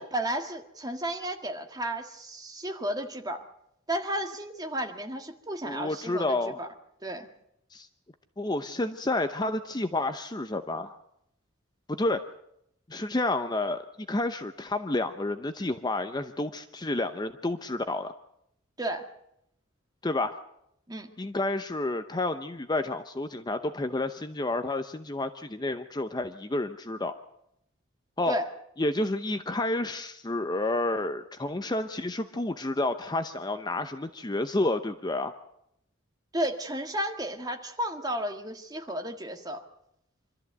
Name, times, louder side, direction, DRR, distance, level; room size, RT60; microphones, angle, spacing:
voice 1, 0.0-3.4 3.9-6.7 7.0-7.3 18.8-19.1 20.9-21.1 28.3-28.5 36.3-39.6, right 1 dB, 20° right, 5 dB, 1.7 m, -33 dB
voice 2, 5.6-6.6 7.7-7.9 8.4-11.0 11.9-12.2 12.9-18.1 20.0-20.4 21.2-27.1 28.2-28.3 28.8-35.3, left 2 dB, 20° left, 9 dB, 0.7 m, -30 dB
25.5 x 13.5 x 8.1 m, 0.78 s
head